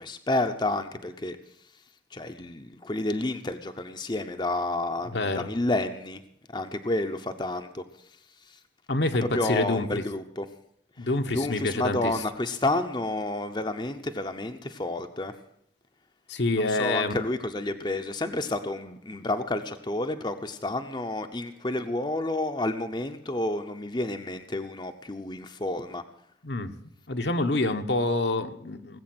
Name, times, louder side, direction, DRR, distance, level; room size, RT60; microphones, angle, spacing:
voice 1, 0.0-1.4 2.1-6.2 6.5-7.8 8.5-8.6 9.2-10.5 11.0-15.3 16.5-26.0, left 2 dB, 25° left, 7 dB, 0.7 m, -30 dB
voice 2, 5.1-5.5 8.9-10.0 11.0-12.1 16.3-17.1 26.4-26.7 27.1-29.0, left 2 dB, 65° left, 6 dB, 1.1 m, -27 dB
18.5 x 8.2 x 7.8 m, 0.73 s
head